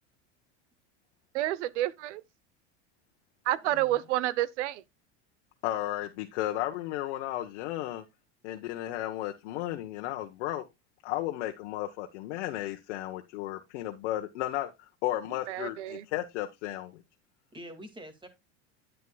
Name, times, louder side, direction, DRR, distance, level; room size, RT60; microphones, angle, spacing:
voice 1, 1.3-2.2 3.5-4.8 15.5-16.0, right 15 dB, 85° right, 0.8 m, -29 dB
voice 2, 3.6-4.1 17.5-18.3, equal, 15° right, 2.2 m, -46 dB
voice 3, 5.6-8.0 8.4-10.6 11.0-14.7 15.0-17.0, left 14 dB, 75° left, 1.2 m, -34 dB
9.5 x 9.4 x 2.3 m
supercardioid pair, 125°, 34 cm